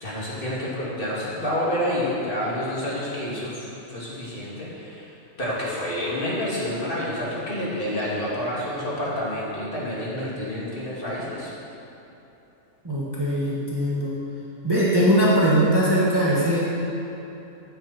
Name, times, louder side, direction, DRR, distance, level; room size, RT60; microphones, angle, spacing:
voice 1, 0.0-5.1 5.4-11.5, left 1 dB, 40° left, -7 dB, 2.9 m, -28 dB
voice 2, 12.8-14.2 14.6-16.6, equal, 15° right, -7 dB, 1.8 m, -21 dB
15.5 x 8.8 x 4.4 m, 2.9 s
omnidirectional pair, 1.5 m